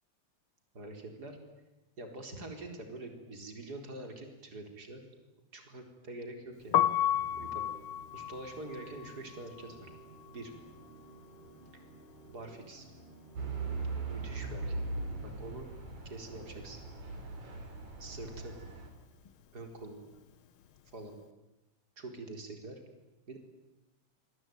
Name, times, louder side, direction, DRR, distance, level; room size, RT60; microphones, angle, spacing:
voice 1, 0.7-1.4 2.0-5.0 5.5-6.8 7.4-7.6 8.1-9.9 10.3-10.5 11.7-11.8 12.3-12.9 14.1-14.8 15.2-15.7 16.0-16.8 18.0-18.6 19.5-20.0 20.9-21.2 22.0-22.8 23.3-23.4, right 2 dB, 30° right, 4 dB, 4.6 m, -45 dB
Piano, 6.6-12.5 12.8-14.4 14.7-21.1, left 11 dB, 60° left, 1.5 m, -35 dB
Musical instrument, 7.1-15.6, right 3 dB, 50° right, 4.5 m, -55 dB
Truck / Idling, 13.4-18.9, right 3 dB, 70° right, 5.3 m, -39 dB
27.5 x 22.5 x 9.3 m, 1.0 s
omnidirectional pair, 3.4 m